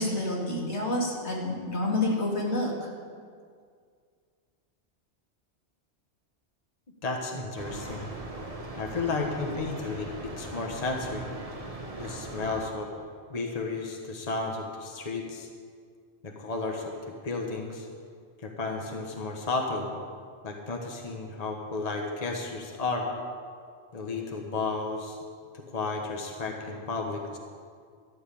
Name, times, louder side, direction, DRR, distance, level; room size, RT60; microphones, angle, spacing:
voice 1, 0.0-2.7, left 1 dB, 80° left, -3 dB, 2.7 m, -28 dB
voice 2, 7.0-8.1 8.8-11.3 12.0-12.9 13.3-15.5 16.2-16.9 17.2-17.9 18.4-19.9 20.4-23.1 23.9-25.2 25.5-27.4, left 3 dB, 35° left, 1 dB, 1.3 m, -33 dB
sound 1, 7.6-12.7, right 2 dB, 35° right, 1.3 m, -40 dB
13.0 x 7.4 x 8.6 m, 2.1 s
omnidirectional pair, 1.1 m